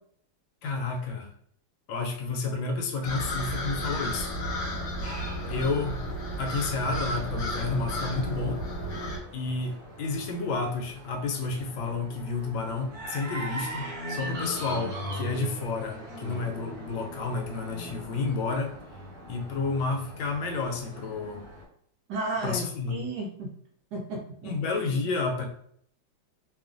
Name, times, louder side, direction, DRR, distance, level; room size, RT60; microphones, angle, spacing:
voice 1, 0.6-1.3 1.9-4.3 5.5-6.1 6.4-8.6 9.3-18.8 19.3-21.5 22.4-23.1 24.4-25.5, left 3 dB, 80° left, 3 dB, 1.3 m, -31 dB
sound 1, 3.0-9.2, equal, 65° left, 1.3 m, -33 dB
sound 2, 5.0-21.6, right 1 dB, 40° right, 0.9 m, -41 dB
voice 2, 22.1-23.5 23.9-24.5, right 2 dB, 75° right, -2 dB, 1.0 m, -33 dB
3.2 x 2.3 x 2.5 m, 0.65 s
omnidirectional pair, 2.1 m